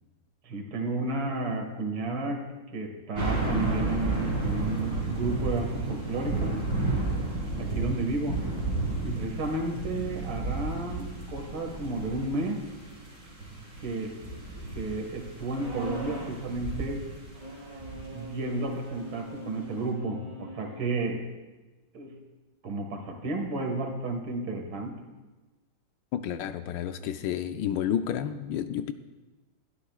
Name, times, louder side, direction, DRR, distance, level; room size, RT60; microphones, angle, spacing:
voice 1, 0.4-2.5 2.7-6.6 7.6-8.4 9.0-12.6 13.8-14.1 14.7-17.1 18.1-21.2 21.9-22.2 22.6-25.0, right 2 dB, 80° right, 3 dB, 2.5 m, -32 dB
sound 1, 3.2-18.3 18.9-19.0, right 2 dB, 50° right, 4.3 m, -32 dB
sound 2, 15.5-16.4 17.3-21.0, equal, 20° right, 2.9 m, -41 dB
voice 2, 26.1-28.9, left 10 dB, 75° left, 9 dB, 1.2 m, -30 dB
20.0 x 12.5 x 2.4 m, 1.2 s
omnidirectional pair, 2.2 m